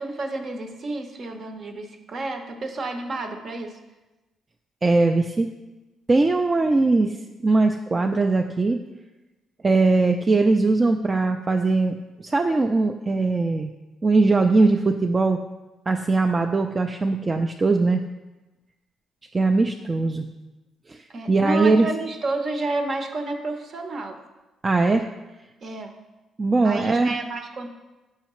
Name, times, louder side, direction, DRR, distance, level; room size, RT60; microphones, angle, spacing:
voice 1, 0.0-3.8 21.1-24.2 25.6-25.9 26.6-27.7, right 2 dB, 50° right, 5 dB, 0.8 m, -30 dB
voice 2, 4.8-5.5 6.1-7.2 7.4-8.8 9.6-13.7 14.0-15.4 15.9-18.0 19.3-20.3 20.9-21.9 24.6-25.1 26.4-27.1, right 3 dB, 30° right, 5 dB, 0.3 m, -20 dB
7.2 x 5.6 x 3.0 m, 1.1 s
cardioid pair, 90°, 0 cm